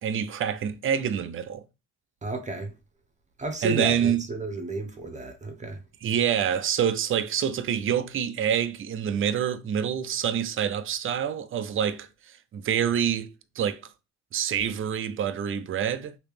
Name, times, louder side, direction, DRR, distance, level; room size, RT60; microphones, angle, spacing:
voice 1, 0.0-1.6 3.6-4.2 6.0-13.8 14.3-16.2, right 8 dB, 45° right, 0.5 m, -27 dB
voice 2, 2.2-2.7 3.4-5.8, right 2 dB, 25° right, 1.0 m, -32 dB
3.1 x 2.9 x 3.3 m
cardioid pair, 90°, 30 cm